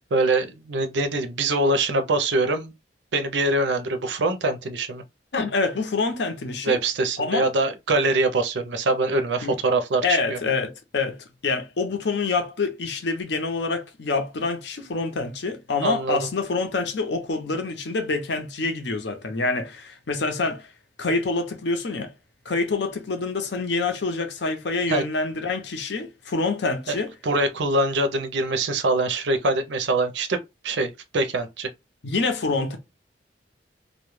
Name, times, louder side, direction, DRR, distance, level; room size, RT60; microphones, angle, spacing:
voice 1, 0.0-2.7 3.1-5.0 6.6-10.4 15.8-16.2 24.9-25.0 26.9-27.0 27.2-31.7, right 2 dB, 85° right, 0.5 m, -24 dB
voice 2, 5.3-6.8 7.2-7.5 9.4-9.6 10.0-20.7 21.0-22.1 22.5-27.1 32.0-32.8, left 3 dB, 75° left, 0.7 m, -26 dB
2.2 x 2.1 x 3.1 m
head